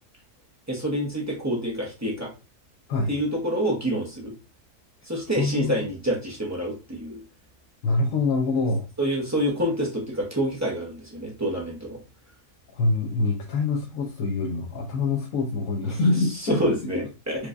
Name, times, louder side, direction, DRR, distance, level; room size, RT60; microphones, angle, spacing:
voice 1, 0.7-2.3 3.1-4.3 5.0-7.2 9.0-12.0 15.8-16.0 16.4-17.5, equal, 15° right, -3 dB, 0.5 m, -27 dB
voice 2, 5.4-5.9 7.8-8.9 12.7-16.6, left 3 dB, 65° left, 1 dB, 0.9 m, -25 dB
4.5 x 2.2 x 2.5 m, 0.32 s
omnidirectional pair, 1.6 m